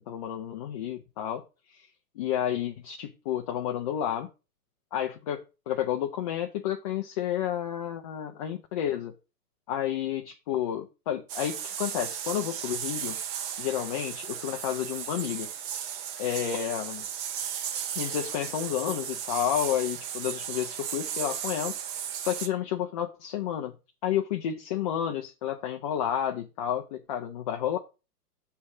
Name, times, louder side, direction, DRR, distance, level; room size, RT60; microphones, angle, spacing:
voice 1, 0.1-1.4 1.7-1.9 2.2-4.3 4.9-9.1 9.7-13.2 13.6-15.5 16.2-17.1 18.0-21.8 22.2-23.7 24.0-27.8, left 10 dB, 25° left, 3 dB, 0.4 m, -31 dB
sound 1, 11.3-22.5, right 9 dB, 35° right, 0.8 m, -35 dB
7.2 x 3.3 x 6.2 m, 0.30 s
hypercardioid pair, 120°, 47 cm